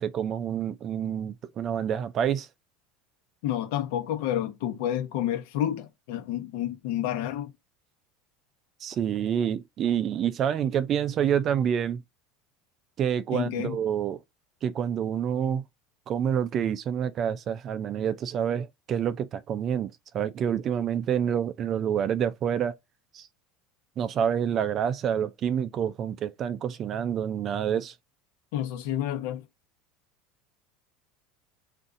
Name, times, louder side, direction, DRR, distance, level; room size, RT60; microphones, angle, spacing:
voice 1, 0.0-2.5 8.8-12.0 13.0-14.2 14.6-15.6 16.1-22.7 23.1-23.3 24.0-27.9, right 8 dB, 30° right, 0.3 m, -27 dB
voice 2, 3.4-7.5 13.3-13.8 28.5-29.4, left 11 dB, 70° left, 0.9 m, -29 dB
3.8 x 2.5 x 2.5 m
cardioid pair, 160°, 0 cm